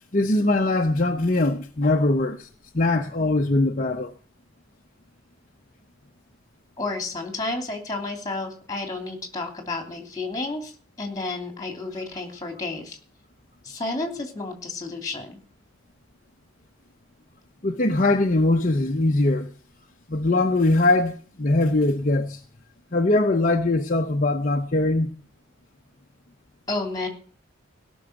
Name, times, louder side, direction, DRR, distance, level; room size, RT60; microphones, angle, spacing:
voice 1, 0.1-2.5 2.7-4.1 17.6-19.5 20.1-22.4 22.9-25.1, left 2 dB, 40° left, 0.8 m, -21 dB
voice 2, 6.8-10.7 11.0-13.0 13.6-15.4 26.7-27.1, left 2 dB, 15° left, 3.0 m, -31 dB
17.0 x 6.3 x 7.9 m
head